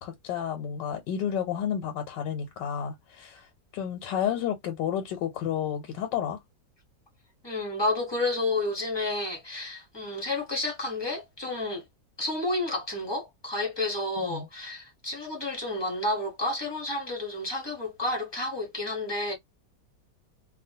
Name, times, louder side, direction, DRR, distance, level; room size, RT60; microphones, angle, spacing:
voice 1, 0.0-6.4 14.2-14.5, left 9 dB, 90° left, 1.3 m, -31 dB
voice 2, 7.4-11.8 12.2-19.3, left 2 dB, 25° left, 0.6 m, -30 dB
2.8 x 2.2 x 2.6 m
omnidirectional pair, 1.9 m